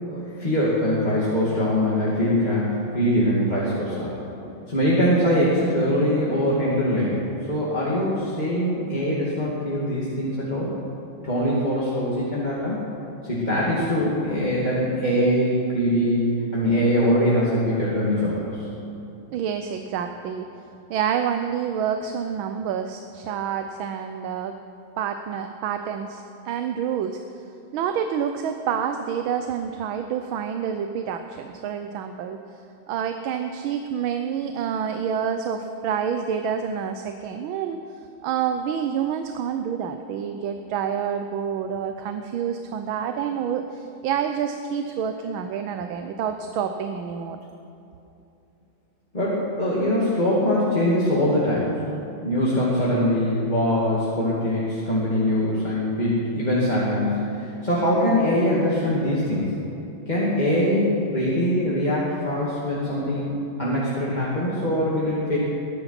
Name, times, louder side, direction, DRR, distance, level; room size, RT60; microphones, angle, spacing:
voice 1, 0.1-4.1 4.7-7.1 7.5-10.7 11.2-12.8 13.2-16.2 16.5-18.6 49.1-51.7 52.2-59.5 60.1-63.3 63.6-65.4, equal, 20° left, -8 dB, 2.5 m, -22 dB
voice 2, 19.3-20.5 20.9-24.6 25.0-27.2 27.7-32.4 32.9-37.8 38.2-47.4, right 8 dB, 85° right, 7 dB, 1.6 m, -28 dB
21.0 x 11.0 x 5.9 m, 2.8 s
omnidirectional pair, 2.2 m